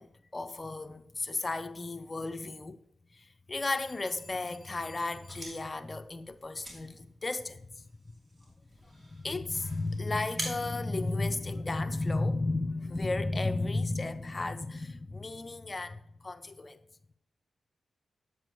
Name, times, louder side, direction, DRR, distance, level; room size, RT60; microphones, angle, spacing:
voice 1, 0.0-2.8 3.1-7.7 8.9-16.8, left 2 dB, 35° left, 0.7 m, -34 dB
sound 1, 5.1-11.9, right 1 dB, 35° right, 2.8 m, -46 dB
7.6 x 7.6 x 3.1 m
supercardioid pair, 45°, 0 cm